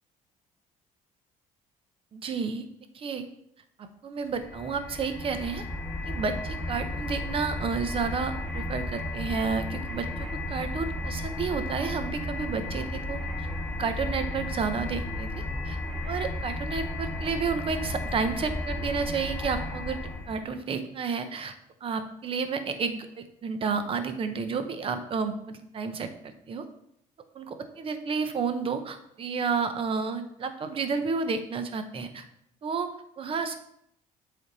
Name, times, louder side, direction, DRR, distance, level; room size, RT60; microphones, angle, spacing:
voice 1, 2.1-2.7 2.9-3.2 3.8-5.6 6.0-13.5 13.8-15.3 15.6-15.8 16.1-20.0 20.3-21.5 21.8-26.7 27.3-32.3 32.6-33.6, right 5 dB, 40° right, 8 dB, 0.8 m, -31 dB
sound 1, 4.3-20.5, left 1 dB, 5° left, 2.7 m, -34 dB
8.1 x 3.5 x 4.0 m, 0.73 s
cardioid pair, 110°, 14 cm